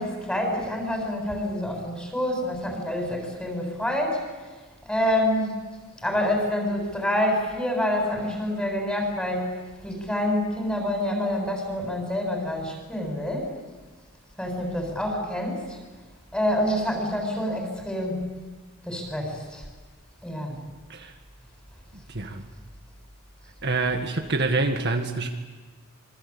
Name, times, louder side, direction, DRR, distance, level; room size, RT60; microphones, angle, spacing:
voice 1, 0.0-4.2 4.9-5.7 6.0-9.5 9.8-13.5 14.4-15.8 16.3-18.3 18.9-19.6 20.2-20.6, left 1 dB, 5° left, 1 dB, 7.6 m, -27 dB
voice 2, 22.1-22.4 23.6-25.3, right 3 dB, 50° right, 4 dB, 1.9 m, -26 dB
27.0 x 25.5 x 8.8 m, 1.3 s
head